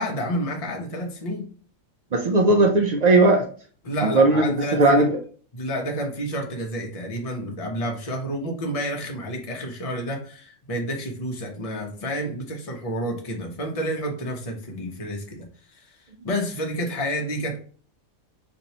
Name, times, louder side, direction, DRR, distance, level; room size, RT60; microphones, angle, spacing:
voice 1, 0.0-1.4 3.8-5.1 5.5-15.5 15.7-17.6, equal, 35° left, 2 dB, 0.8 m, -30 dB
voice 2, 2.1-3.4 4.0-4.4 4.7-5.2, right 2 dB, 85° right, 2 dB, 0.3 m, -17 dB
3.0 x 2.6 x 4.0 m, 0.43 s
omnidirectional pair, 1.4 m